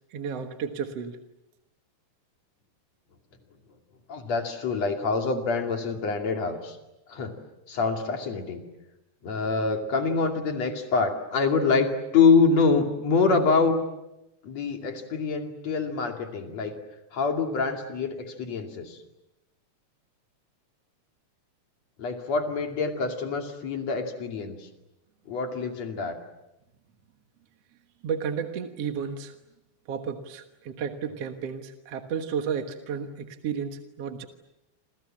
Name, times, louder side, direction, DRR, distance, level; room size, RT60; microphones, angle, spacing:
voice 1, 0.1-1.2 28.0-29.4 29.9-34.3, right 7 dB, 60° right, 6 dB, 2.4 m, -32 dB
voice 2, 4.1-6.8 7.1-7.4 7.7-8.6 9.2-13.8 14.4-16.8 17.1-19.0 22.0-24.7 25.3-26.2, left 4 dB, 60° left, 4 dB, 3.8 m, -25 dB
28.5 x 27.5 x 7.6 m, 0.94 s
omnidirectional pair, 3.4 m